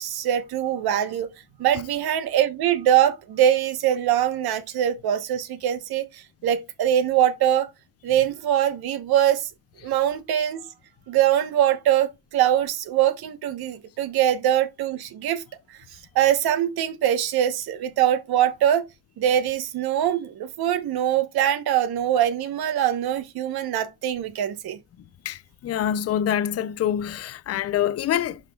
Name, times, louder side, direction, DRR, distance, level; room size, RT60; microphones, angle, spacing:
voice 1, 0.0-1.3 1.6-7.7 8.0-9.5 9.8-10.6 11.1-15.4 16.1-18.8 19.2-24.8, right 11 dB, 70° right, 1.2 m, -23 dB
voice 2, 25.3-28.4, left 10 dB, 40° left, 0.5 m, -25 dB
11.0 x 5.4 x 2.3 m
cardioid pair, 165°, 39 cm